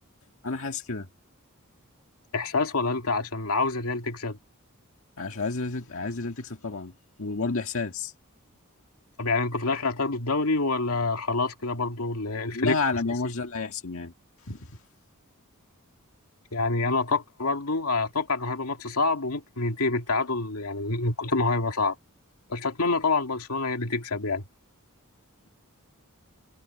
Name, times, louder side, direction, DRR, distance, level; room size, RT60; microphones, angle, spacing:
voice 1, 0.4-1.1 5.2-6.9 7.2-8.1 12.5-14.1 14.5-14.6, left 3 dB, 65° left, 1.9 m, -30 dB
voice 2, 2.3-4.4 9.2-13.1 16.5-22.0 22.5-24.4, left 3 dB, 85° left, 2.5 m, -27 dB
head